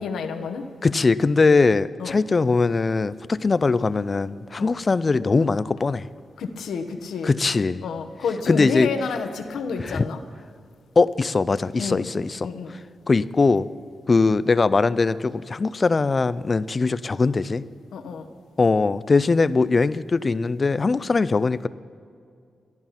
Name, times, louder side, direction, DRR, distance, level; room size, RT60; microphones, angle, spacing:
voice 1, 0.0-0.6 2.0-2.1 4.6-4.7 6.4-7.3 7.8-10.2 11.8-12.1 12.4-12.7 17.9-18.3, left 5 dB, 85° left, 6 dB, 0.9 m, -29 dB
voice 2, 0.8-6.1 7.2-7.8 8.5-8.9 9.8-10.1 11.0-12.5 13.1-13.7 14.1-17.6 18.6-21.7, left 4 dB, 35° left, 17 dB, 0.4 m, -21 dB
12.5 x 10.5 x 5.7 m, 2.3 s
cardioid pair, 90°, 0 cm